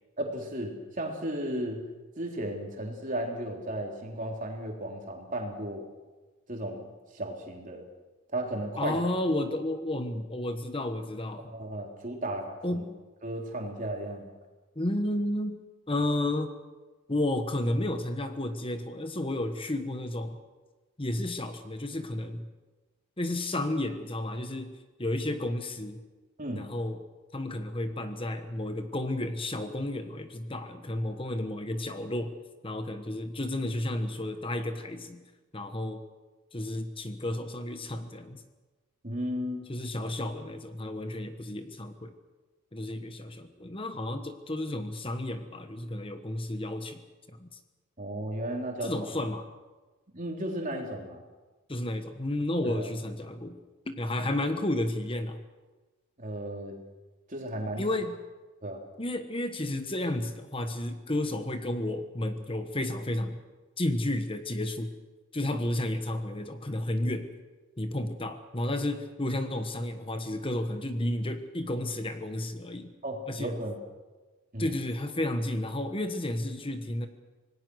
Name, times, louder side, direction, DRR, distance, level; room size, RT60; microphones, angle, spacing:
voice 1, 0.2-1.8 2.2-5.8 6.5-6.9 7.1-7.8 8.3-9.0 11.5-12.8 13.2-14.3 26.4-26.6 39.0-39.7 48.0-48.9 50.1-51.2 52.6-52.9 56.2-56.8 57.3-57.9 58.6-58.8 73.0-73.8 74.5-74.7, right 1 dB, 35° right, 1 dB, 3.7 m, -34 dB
voice 2, 8.8-11.5 12.6-12.9 14.7-15.6 15.9-16.5 17.1-20.4 21.0-22.5 23.2-24.7 25.0-26.0 26.5-27.0 27.3-32.3 32.6-35.2 35.5-36.0 36.5-38.4 39.7-42.1 42.7-47.0 47.3-47.5 48.8-49.5 51.7-53.6 53.9-55.4 57.8-58.2 59.0-63.4 63.8-64.9 65.3-67.3 67.8-72.9 73.3-73.6 74.6-77.1, left 1 dB, 25° left, 8 dB, 1.2 m, -32 dB
26.0 x 19.0 x 6.4 m, 1.2 s
head